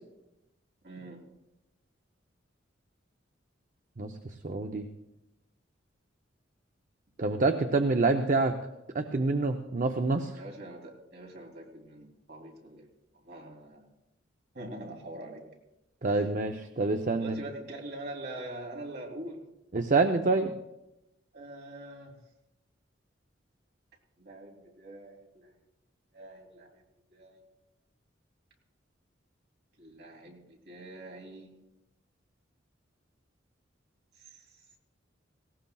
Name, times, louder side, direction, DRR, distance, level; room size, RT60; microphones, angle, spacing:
voice 1, 0.8-1.2 10.4-12.9 13.1-13.9 14.5-15.5 17.2-19.4 21.3-22.2 24.2-25.5 26.1-26.7 27.1-27.4 29.8-31.5 34.2-34.4, right 1 dB, 60° right, -1 dB, 3.1 m, -44 dB
voice 2, 4.4-4.8 7.2-8.5 8.9-10.3 16.0-17.4 19.7-20.5, right 3 dB, 45° right, 6 dB, 0.6 m, -26 dB
18.5 x 17.5 x 2.3 m, 0.92 s
head